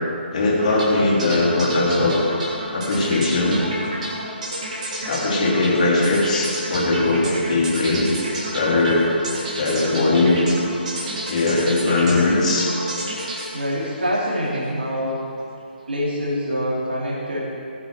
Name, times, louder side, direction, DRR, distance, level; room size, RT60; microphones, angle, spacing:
voice 1, 0.3-2.2 2.7-3.6 4.9-8.1 8.5-9.1 9.6-10.5 11.3-12.7, left 2 dB, 45° left, -3 dB, 2.9 m, -20 dB
sound 1, 0.6-14.7, right 1 dB, 40° right, 3.0 m, -31 dB
voice 2, 13.5-15.3 15.9-17.5, equal, 65° right, -6 dB, 3.0 m, -25 dB
18.0 x 9.6 x 3.4 m, 2.7 s
figure-of-eight pair, 140°, 6 cm